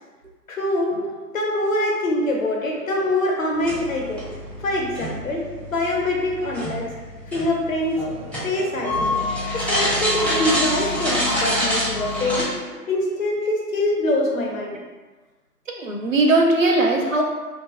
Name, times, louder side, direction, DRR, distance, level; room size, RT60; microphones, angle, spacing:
voice 1, 0.5-1.0 1.3-4.4 4.6-6.9 7.3-8.0 8.4-9.1 9.5-12.5 12.9-14.8, left 1 dB, 55° left, 0 dB, 0.6 m, -24 dB
sound 1, 3.6-12.4, left 1 dB, 5° left, 0.3 m, -26 dB
voice 2, 15.8-17.2, right 2 dB, 55° right, 1 dB, 0.5 m, -20 dB
3.1 x 2.0 x 2.4 m, 1.3 s
hypercardioid pair, 175°, 49 cm